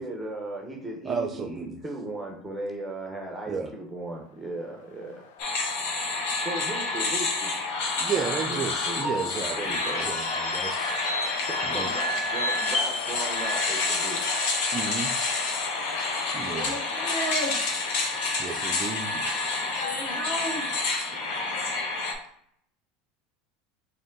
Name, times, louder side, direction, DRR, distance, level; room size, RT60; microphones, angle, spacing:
voice 1, 0.0-5.3 6.4-7.5 8.2-10.1 11.5-14.2, right 2 dB, 5° right, 0 dB, 0.9 m, -37 dB
voice 2, 1.0-1.8 3.5-3.7 8.0-10.9 11.6-11.9 14.7-15.1 16.3-16.8 18.4-19.3, right 6 dB, 30° right, 4 dB, 0.4 m, -33 dB
sound 1, 4.6-21.3, left 6 dB, 85° left, 0.6 m, -40 dB
sound 2, 5.4-22.1, left 3 dB, 65° left, 1.0 m, -28 dB
voice 3, 16.5-17.6 19.8-20.7, equal, 25° left, -2 dB, 1.7 m, -33 dB
4.1 x 2.7 x 3.7 m, 0.68 s
supercardioid pair, 120°, 0 cm